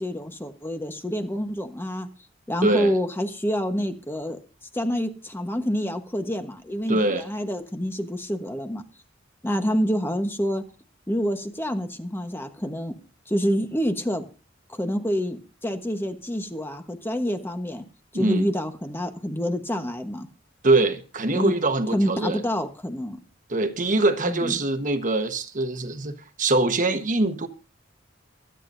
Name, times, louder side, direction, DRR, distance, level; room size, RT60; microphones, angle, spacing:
voice 1, 0.0-2.1 2.5-4.4 4.7-8.8 9.4-10.6 11.1-12.9 13.3-14.2 14.7-17.8 18.1-20.3 21.3-21.5 21.9-23.2 24.2-24.6, equal, 10° left, 1.1 m, -27 dB
voice 2, 2.6-2.9 6.9-7.2 18.1-18.5 20.6-22.4 23.5-26.1 26.4-27.5, right 2 dB, 45° right, 1.2 m, -23 dB
24.0 x 9.0 x 2.6 m
head